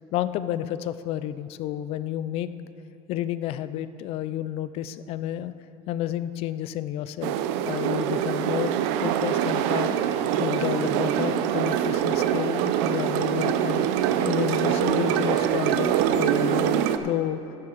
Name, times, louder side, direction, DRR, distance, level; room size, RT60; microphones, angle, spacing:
voice 1, 0.1-2.5 3.1-5.5 5.9-7.4 7.6-10.0 10.4-13.9 14.2-17.4, left 12 dB, 45° left, 14 dB, 0.4 m, -30 dB
sound 1, 7.2-17.0, right 10 dB, 75° right, 0.6 m, -24 dB
11.5 x 7.0 x 6.5 m, 3.0 s
cardioid pair, 165°, 15 cm